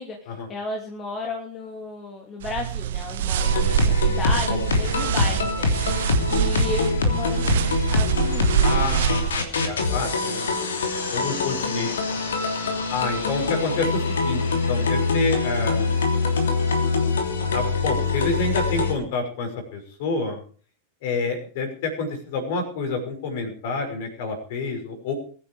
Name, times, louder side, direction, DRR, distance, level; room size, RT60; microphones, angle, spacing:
voice 1, 0.0-5.7 6.3-8.8, left 3 dB, 25° left, 2 dB, 2.8 m, -33 dB
sound 1, 2.4-9.4, right 11 dB, 55° right, 0.6 m, -25 dB
sound 2, 3.4-18.9, left 4 dB, 65° left, 3.1 m, -24 dB
voice 2, 8.6-10.6 11.1-11.9 12.9-15.9 17.5-20.4 21.0-25.1, left 3 dB, 50° left, 5 dB, 5.7 m, -28 dB
22.0 x 10.0 x 4.9 m, 0.43 s
figure-of-eight pair, 90°, 0 cm